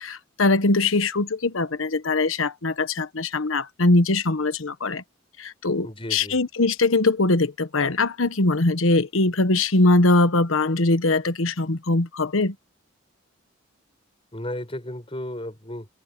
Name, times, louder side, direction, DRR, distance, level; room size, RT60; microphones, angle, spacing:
voice 1, 0.0-5.0 5.4-12.5, left 2 dB, 80° left, 1.2 m, -21 dB
voice 2, 5.8-6.4 14.3-15.9, left 1 dB, 25° left, 5.0 m, -34 dB
head